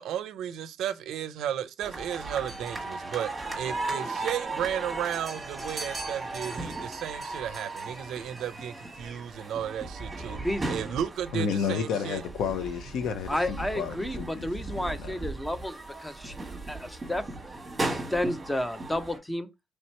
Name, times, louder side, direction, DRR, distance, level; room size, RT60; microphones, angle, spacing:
voice 1, 0.0-3.3 3.6-10.4 10.7-12.2, right 9 dB, 75° right, 0.4 m, -34 dB
sound 1, 1.8-19.2, right 2 dB, 15° right, 1.2 m, -37 dB
voice 2, 10.4-10.7 13.3-16.4 16.7-17.2 17.8-19.5, left 1 dB, 10° left, 0.5 m, -31 dB
voice 3, 11.3-15.2, left 6 dB, 80° left, 0.5 m, -32 dB
3.2 x 2.9 x 4.3 m
cardioid pair, 165°, 0 cm